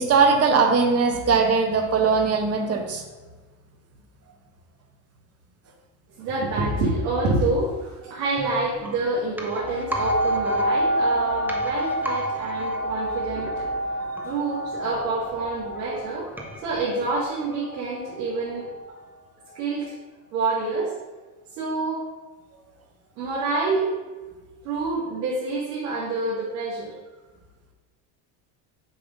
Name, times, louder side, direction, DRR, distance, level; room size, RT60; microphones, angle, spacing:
voice 1, 0.0-3.0, right 5 dB, 30° right, 4 dB, 1.2 m, -20 dB
voice 2, 6.2-13.7 14.2-16.3 16.6-18.7 19.5-19.9 20.3-20.9 21.6-22.1 23.2-23.9 24.6-26.9, right 3 dB, 85° right, -7 dB, 2.1 m, -27 dB
sound 1, 8.4-18.1 18.4-18.5, right 2 dB, 5° right, 0.6 m, -39 dB
sound 2, 9.6-18.9 19.5-19.6, equal, 30° left, 1.7 m, -28 dB
6.8 x 3.7 x 5.2 m, 1.2 s
supercardioid pair, 115°, 46 cm